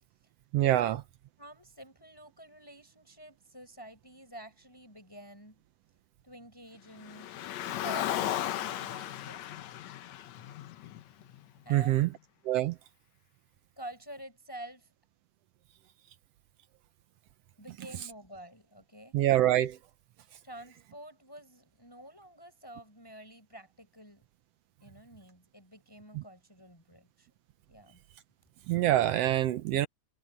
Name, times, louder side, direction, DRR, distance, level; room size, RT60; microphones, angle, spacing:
voice 1, 0.5-1.0 11.7-12.1 12.5-12.7 19.1-19.8 26.1-26.2 28.7-29.9, right 13 dB, 70° right, 1.6 m, -25 dB
voice 2, 1.4-5.6 6.2-7.4 7.6-9.5 11.6-12.1 13.8-14.9 17.6-19.2 20.4-24.2 24.8-27.3 27.7-28.0, right 1 dB, 5° left, 6.5 m, -48 dB
Car, 7.0-11.4, left 12 dB, 70° left, 2.2 m, -35 dB
omnidirectional pair, 3.4 m